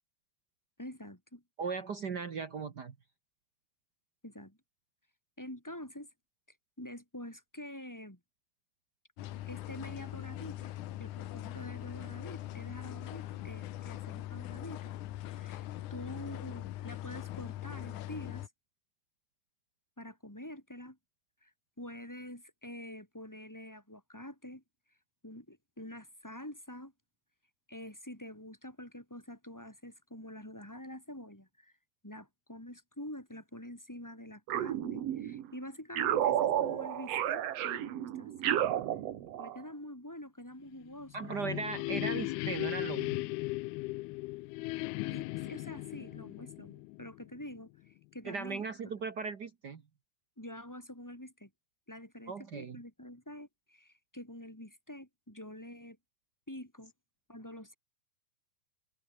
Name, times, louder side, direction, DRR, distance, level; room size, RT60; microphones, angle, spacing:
voice 1, 0.8-1.4 4.2-4.6 5.4-6.1 6.8-8.2 9.5-10.7 11.0-14.9 15.2-15.6 15.9-18.5 20.0-21.0 21.4-21.5 21.8-24.6 25.2-26.9 27.7-31.7 32.0-38.5 39.4-41.3 45.0-48.9 50.4-51.5 51.9-56.0 56.5-56.9 57.3-57.8, left 1 dB, 5° left, 5.1 m, -46 dB
voice 2, 1.6-2.9 41.1-43.2 48.2-49.8 52.3-52.8, right 5 dB, 80° right, 0.9 m, -38 dB
sound 1, 9.2-18.5, left 14 dB, 70° left, 2.1 m, -41 dB
sound 2, 34.5-35.5 35.9-39.6, right 11 dB, 65° right, 1.7 m, -32 dB
sound 3, 40.9-47.6, left 22 dB, 85° left, 2.5 m, -37 dB
omnidirectional pair, 4.4 m